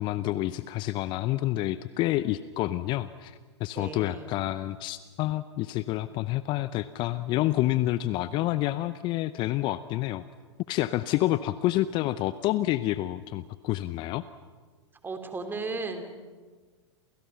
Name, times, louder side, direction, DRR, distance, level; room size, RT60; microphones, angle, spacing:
voice 1, 0.0-10.2 10.7-14.2, left 15 dB, 35° left, 15 dB, 0.7 m, -28 dB
voice 2, 3.7-4.3 15.0-16.0, right 3 dB, 15° right, 7 dB, 3.2 m, -35 dB
29.0 x 28.5 x 5.8 m, 1.4 s
figure-of-eight pair, 100°, 15 cm